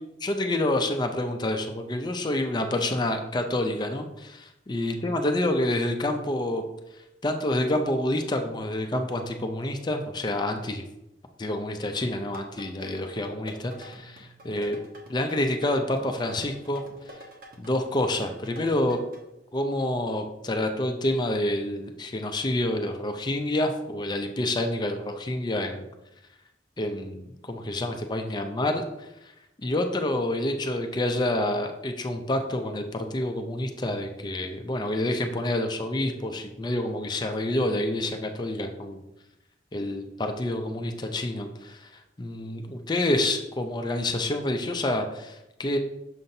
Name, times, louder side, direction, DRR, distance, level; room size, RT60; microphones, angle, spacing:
voice 1, 0.2-6.6 7.2-10.8 11.4-14.8 15.1-16.8 17.6-19.0 19.5-25.9 26.8-29.1 29.6-39.0 39.7-41.9 42.2-45.8, left 1 dB, 25° left, 5 dB, 0.4 m, -28 dB
sound 1, 12.3-19.2, equal, 55° right, 1.0 m, -47 dB
6.6 x 5.6 x 2.7 m, 0.89 s
head